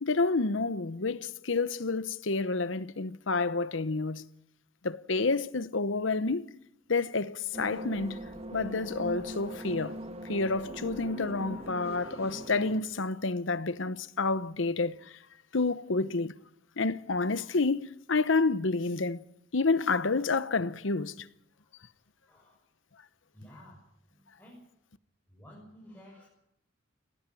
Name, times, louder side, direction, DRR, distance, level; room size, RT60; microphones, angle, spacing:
voice 1, 0.0-4.2 4.8-6.5 6.9-8.2 8.5-10.0 10.2-15.2 15.5-16.3 16.8-19.2 19.5-21.3, left 3 dB, 80° left, 0.9 m, -29 dB
sound 1, 7.5-12.8, right 1 dB, 30° right, 1.5 m, -40 dB
voice 2, 22.3-22.6 23.3-23.8 24.1-24.6 25.3-26.3, equal, 10° left, 6.5 m, -53 dB
20.5 x 17.5 x 9.1 m
head